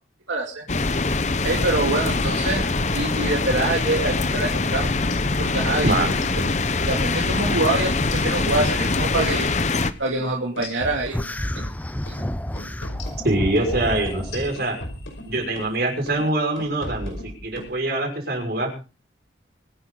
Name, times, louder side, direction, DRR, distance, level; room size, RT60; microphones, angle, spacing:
voice 1, 0.3-0.6 1.4-2.7 2.9-4.9 5.4-6.0 6.3-6.5 6.8-9.5 10.0-11.2, right 2 dB, 80° right, 0 dB, 2.7 m, -25 dB
sound 1, 0.7-9.9, left 3 dB, 40° left, 0.9 m, -23 dB
sound 2, 2.0-3.7 4.1-4.3 4.6-5.7 6.1-9.8 10.1-10.2 10.6-11.7 12.1-12.3 12.6-15.7 16.1-16.3 16.6-17.7, left 1 dB, 90° left, 5.4 m, -37 dB
voice 2, 5.8-6.2 13.2-14.8 15.3-18.7, right 2 dB, 55° right, 2 dB, 6.0 m, -24 dB
sound 3, 11.1-14.5, left 1 dB, 10° left, 0.7 m, -30 dB
24.5 x 11.0 x 4.0 m, 0.34 s
head